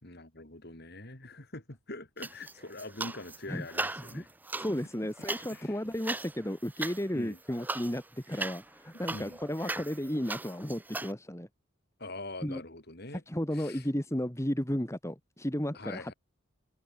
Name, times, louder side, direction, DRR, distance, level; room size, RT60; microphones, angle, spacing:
voice 1, 0.0-4.3 4.7-4.8 5.0-5.1 5.5-5.8 7.1-7.4 9.1-9.4 12.0-13.2 13.5-13.9 15.7-16.1, left 2 dB, 50° left, 3.5 m, -44 dB
sound 1, 2.2-3.4 3.7-11.1, right 2 dB, 10° right, 0.5 m, -39 dB
voice 2, 4.6-11.5 12.4-12.6 13.3-16.1, equal, 15° left, 1.9 m, -34 dB
head